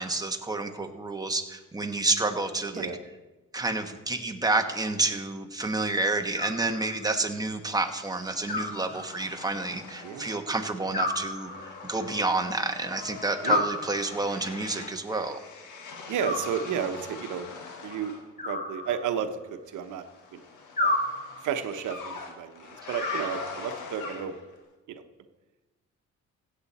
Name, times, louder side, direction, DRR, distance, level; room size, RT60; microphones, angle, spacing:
voice 1, 0.0-2.9 3.5-15.4, right 2 dB, 10° right, 4 dB, 1.2 m, -29 dB
Animal, 6.3-7.2 8.5-9.5 10.9-12.0 13.4-14.5 16.2-17.1 18.4-19.5 20.8-21.7 23.0-23.9, left 1 dB, 25° left, 2.0 m, -32 dB
sound 1, 7.6-10.7 11.0-18.3 19.8-24.5, left 5 dB, 80° left, 1.7 m, -42 dB
voice 2, 10.0-10.3 13.4-13.7 16.1-17.5 17.8-18.1 18.4-20.0 20.3-20.4 20.8-21.0 21.4-24.3 24.9-25.0, right 8 dB, 80° right, 8 dB, 1.0 m, -32 dB
16.0 x 7.6 x 4.2 m, 1.2 s
cardioid pair, 90°, 30 cm